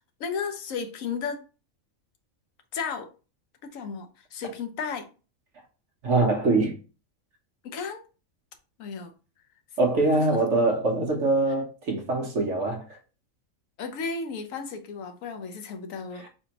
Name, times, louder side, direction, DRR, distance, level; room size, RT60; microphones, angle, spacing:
voice 1, 0.2-1.4 2.7-3.1 3.6-5.1 7.6-8.0 8.8-9.1 10.1-10.3 13.8-16.3, left 5 dB, 70° left, 1.1 m, -34 dB
voice 2, 6.0-6.8 9.8-13.0 16.2-16.3, right 2 dB, 60° right, 1.1 m, -24 dB
4.3 x 3.4 x 2.9 m
omnidirectional pair, 1.4 m